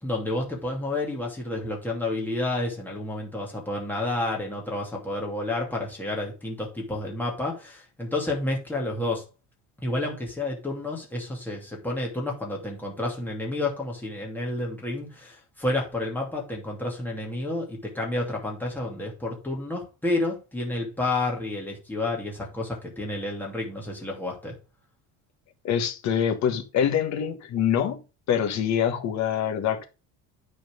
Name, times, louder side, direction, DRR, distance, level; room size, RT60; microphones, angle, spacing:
voice 1, 0.0-9.2 9.8-24.5, left 2 dB, 5° left, 2.6 m, -30 dB
voice 2, 25.6-28.0 28.3-29.8, left 8 dB, 55° left, 1.7 m, -25 dB
9.3 x 4.5 x 5.2 m
cardioid pair, 155°, 34 cm